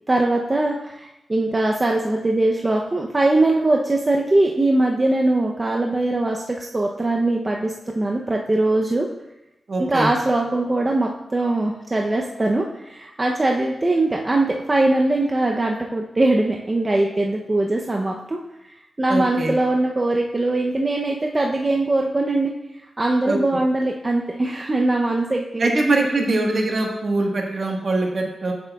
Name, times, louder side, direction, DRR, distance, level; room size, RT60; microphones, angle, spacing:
voice 1, 0.1-9.1 9.8-18.4 19.0-22.5 23.0-25.7 26.0-26.3, right 2 dB, 30° right, 0 dB, 0.6 m, -21 dB
voice 2, 9.7-10.1 19.1-19.5 23.3-23.4 25.6-28.5, right 2 dB, 55° right, 1 dB, 1.3 m, -22 dB
8.0 x 7.5 x 2.3 m, 0.91 s
cardioid pair, 65°, 0 cm